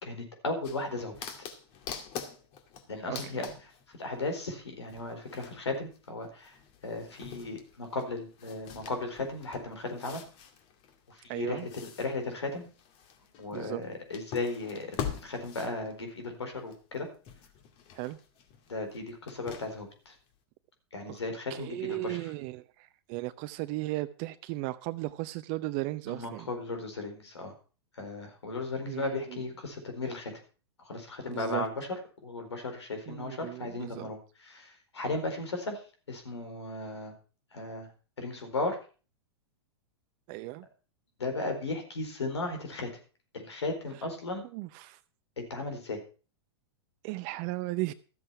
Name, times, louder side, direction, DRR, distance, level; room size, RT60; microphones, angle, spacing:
voice 1, 0.0-1.5 2.9-3.4 4.0-6.6 6.8-10.2 11.1-12.7 13.4-17.1 18.7-20.2 20.9-22.3 26.1-27.5 27.9-30.3 30.8-35.8 36.1-37.1 37.5-37.9 38.2-38.8 41.2-42.9 43.3-44.4 45.4-46.0, left 2 dB, 85° left, 4.4 m, -36 dB
sound 1, 0.6-4.3 4.9-17.0 17.2-19.9 20.3-20.4, left 8 dB, 45° left, 2.3 m, -44 dB
voice 2, 3.1-3.5 11.3-11.7 13.5-13.8 17.9-18.2 21.1-21.2 21.5-26.5 28.9-29.4 31.3-31.6 33.1-34.1 40.3-40.7 44.5-45.0 47.0-47.9, right 19 dB, 45° right, 0.7 m, -36 dB
13.5 x 7.7 x 5.8 m
hypercardioid pair, 105°, 14 cm